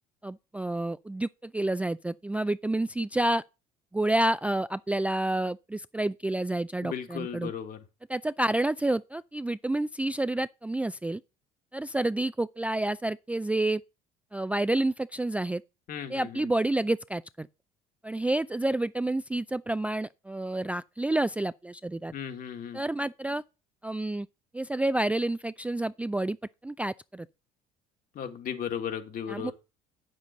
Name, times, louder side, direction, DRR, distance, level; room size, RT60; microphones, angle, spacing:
voice 1, 0.2-3.4 3.9-7.5 8.1-11.2 11.7-13.8 14.3-15.6 16.1-17.5 18.0-22.1 22.7-23.4 23.8-24.3 24.5-26.4 26.6-27.3 29.3-29.5, right 1 dB, 5° right, 0.4 m, -29 dB
voice 2, 6.8-7.8 15.9-16.5 22.1-22.8 28.1-29.5, left 8 dB, 50° left, 1.9 m, -36 dB
9.0 x 7.5 x 3.9 m
hypercardioid pair, 65°, 18 cm